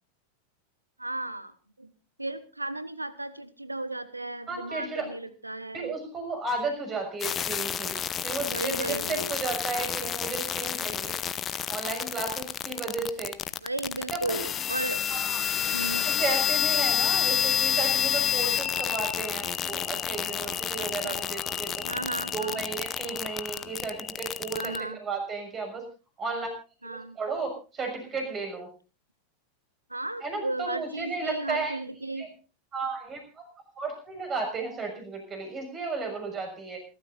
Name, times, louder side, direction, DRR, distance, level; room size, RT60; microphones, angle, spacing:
voice 1, 1.0-1.9 2.2-5.9 8.4-9.4 13.6-15.1 15.7-16.1 20.8-21.2 21.8-22.6 24.5-25.0 26.8-27.2 29.9-32.3, right 2 dB, 85° right, 15 dB, 1.2 m, -35 dB
voice 2, 4.5-5.1 5.7-11.2 11.7-13.4 14.1-14.4 15.1-15.4 16.0-21.8 22.3-24.7 25.0-25.8 26.2-26.5 26.8-28.7 30.2-31.7 32.2-32.3 32.7-33.5 33.7-36.8, right 3 dB, 25° right, 5 dB, 6.4 m, -34 dB
sound 1, 7.2-24.8, left 9 dB, 25° left, 0.9 m, -29 dB
27.5 x 13.5 x 2.7 m, 0.34 s
figure-of-eight pair, 90°, 0 cm